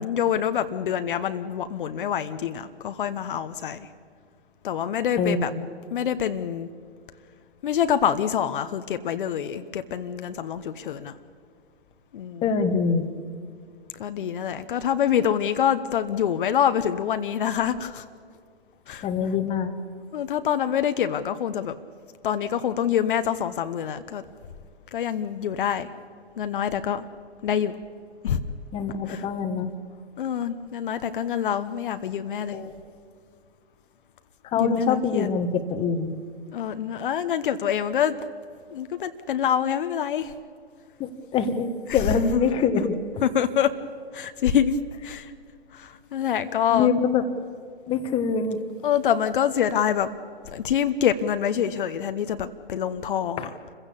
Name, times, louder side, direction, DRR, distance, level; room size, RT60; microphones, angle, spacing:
voice 1, 0.0-3.9 4.6-5.5 5.9-6.7 7.6-11.1 12.1-12.4 14.0-18.0 18.9-19.1 20.1-21.7 22.2-24.2 24.9-25.9 26.4-27.0 27.4-27.7 28.2-28.4 29.1-29.2 30.2-32.6 34.6-35.3 36.5-38.2 38.7-40.3 42.1-42.4 43.2-43.7 44.1-44.8 45.0-45.3 45.7-46.9 48.8-50.1 50.5-53.5, left 9 dB, 50° left, 9 dB, 1.1 m, -26 dB
voice 2, 5.2-5.7 12.4-13.1 19.0-19.7 28.7-29.7 32.5-32.7 34.4-36.1 41.0-43.0 46.7-47.2 47.9-48.6 53.4-53.5, left 5 dB, 15° left, 7 dB, 1.3 m, -25 dB
27.5 x 16.0 x 8.5 m, 2.2 s
hypercardioid pair, 135°, 32 cm